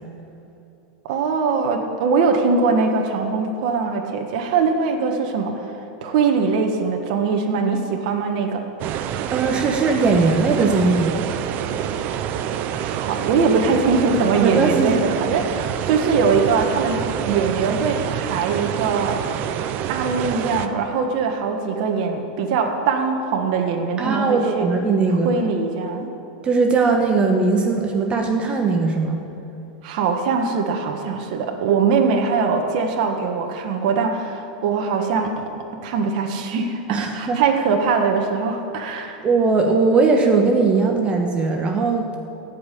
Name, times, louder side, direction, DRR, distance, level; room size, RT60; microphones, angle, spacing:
voice 1, 1.1-5.6 6.0-8.6 12.7-19.2 19.9-24.7 25.1-26.1 29.8-35.5 35.8-39.2, right 5 dB, 60° right, 3 dB, 1.4 m, -22 dB
sound 1, 8.8-20.7, right 9 dB, 45° right, 0.7 m, -27 dB
voice 2, 9.3-11.2 14.3-15.0 24.0-25.3 26.4-29.2 36.9-37.4 39.2-42.2, right 4 dB, 25° right, 3 dB, 1.2 m, -19 dB
15.0 x 5.6 x 10.0 m, 2.9 s
supercardioid pair, 125°, 4 cm